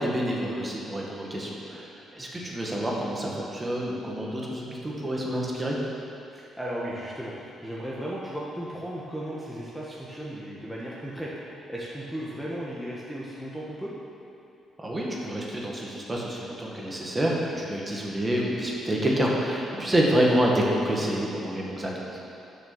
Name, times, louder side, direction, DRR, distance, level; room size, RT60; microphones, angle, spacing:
voice 1, 0.0-5.8 14.8-22.1, equal, 20° right, -3 dB, 1.6 m, -27 dB
voice 2, 6.3-7.3 7.6-11.3 11.7-13.9 19.7-19.9, right 1 dB, ahead, -6 dB, 1.2 m, -35 dB
6.3 x 6.1 x 7.1 m, 2.7 s
cardioid pair, 90°, 0 cm